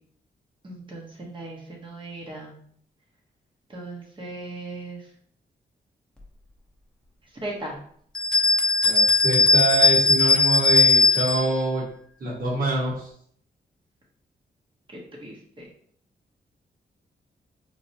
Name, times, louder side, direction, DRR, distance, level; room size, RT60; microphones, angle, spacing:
voice 1, 0.6-2.5 3.7-5.1 7.4-7.8 14.9-15.7, right 2 dB, 30° right, -2 dB, 0.9 m, -37 dB
sound 1, 8.1-11.5, left 3 dB, 5° left, 0.7 m, -18 dB
voice 2, 8.8-11.8 12.2-13.1, right 2 dB, 60° right, -4 dB, 1.3 m, -25 dB
4.6 x 2.1 x 2.8 m, 0.62 s
wide cardioid pair, 145°, 17 cm